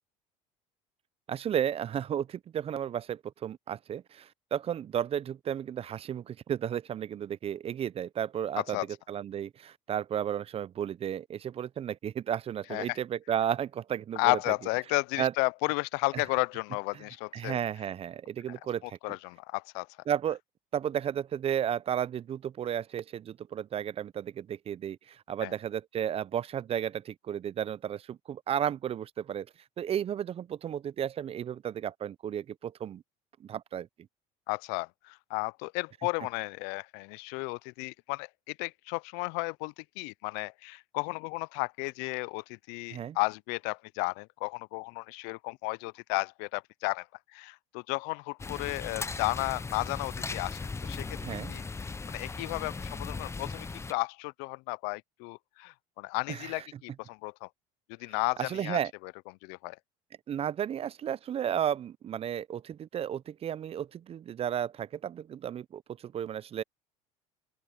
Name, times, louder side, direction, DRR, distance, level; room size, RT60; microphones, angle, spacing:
voice 1, 1.3-8.8 9.1-14.4 15.2-15.3 16.1-16.2 16.9-17.0 17.3-19.0 20.1-20.4 20.7-29.5 29.8-33.0 33.4-33.9 42.9-43.2 51.2-51.5 56.3-56.6 58.4-58.9 60.3-66.6, right 9 dB, 35° right, 0.5 m, -33 dB
voice 2, 14.2-17.6 18.8-19.9 25.4-25.5 34.5-47.1 47.3-51.1 51.5-57.5 58.0-59.1 59.4-59.8, left 29 dB, 75° left, 0.5 m, -33 dB
sound 1, 48.4-53.9, left 4 dB, 15° left, 0.7 m, -38 dB
open air
supercardioid pair, 85°, 17 cm